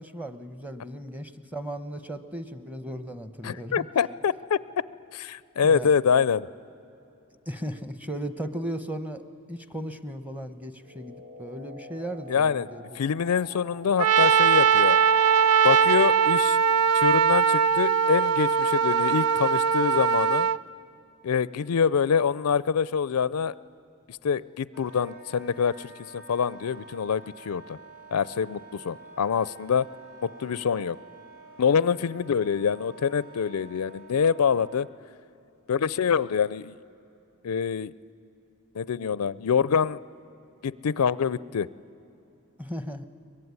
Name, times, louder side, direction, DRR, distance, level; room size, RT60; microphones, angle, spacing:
voice 1, 0.0-3.9 5.6-5.9 7.5-9.2 9.5-13.0 42.6-43.1, equal, 5° right, 9 dB, 0.9 m, -36 dB
voice 2, 3.4-4.6 5.1-6.5 12.3-12.7 12.9-15.0 15.6-16.6 16.9-20.5 21.2-23.5 24.2-27.8 28.1-29.9 30.2-31.0 31.6-34.9 35.7-36.7 37.4-37.9 38.7-40.0 40.6-41.7, left 6 dB, 85° left, 19 dB, 0.5 m, -25 dB
sound 1, 10.8-15.7, left 1 dB, 55° right, 1.8 m, -46 dB
Trumpet, 14.0-20.6, right 7 dB, 85° right, 0.5 m, -21 dB
Wind instrument woodwind instrument, 24.7-34.8, right 3 dB, 40° right, 5.8 m, -48 dB
23.0 x 21.0 x 9.6 m, 2.8 s
head